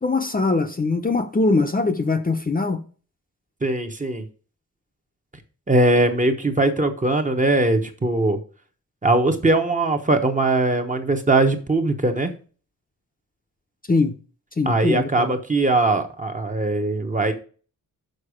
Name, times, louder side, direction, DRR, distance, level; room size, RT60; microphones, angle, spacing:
voice 1, 0.0-2.8 13.9-14.2 14.6-15.3, left 3 dB, 25° left, 0.7 m, -22 dB
voice 2, 3.6-4.2 5.7-8.4 9.0-12.3 14.6-17.3, right 2 dB, 25° right, 0.9 m, -20 dB
6.6 x 5.3 x 4.9 m
wide cardioid pair, 160°, 34 cm